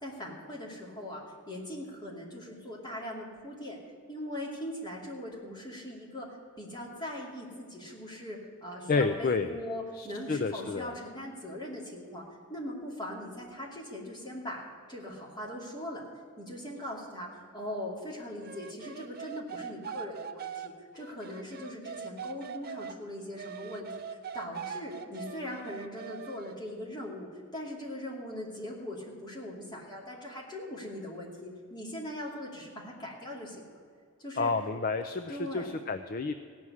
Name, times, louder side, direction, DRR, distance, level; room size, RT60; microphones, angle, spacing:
voice 1, 0.0-3.8 4.1-12.2 12.5-16.0 16.4-33.8 34.2-34.5 35.3-35.7, left 1 dB, 20° left, -3 dB, 2.6 m, -40 dB
voice 2, 8.9-9.6 10.0-10.9 34.4-36.3, left 4 dB, 40° left, 9 dB, 0.5 m, -30 dB
sound 1, 18.4-23.0 23.4-26.6, right 7 dB, 45° right, 0.6 m, -42 dB
16.5 x 6.1 x 9.6 m, 2.2 s
head